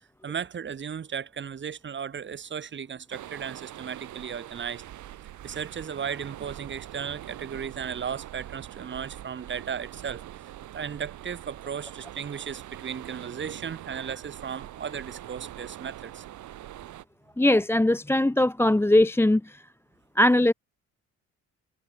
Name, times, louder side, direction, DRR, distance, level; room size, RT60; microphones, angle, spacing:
voice 1, 0.2-4.8 5.4-10.2 10.7-16.2, right 7 dB, 40° right, 1.3 m, -35 dB
sound 1, 3.1-17.0, right 13 dB, 75° right, 4.3 m, -43 dB
voice 2, 17.4-19.6 20.2-20.5, left 1 dB, 10° left, 1.0 m, -20 dB
cardioid pair, 85°, 29 cm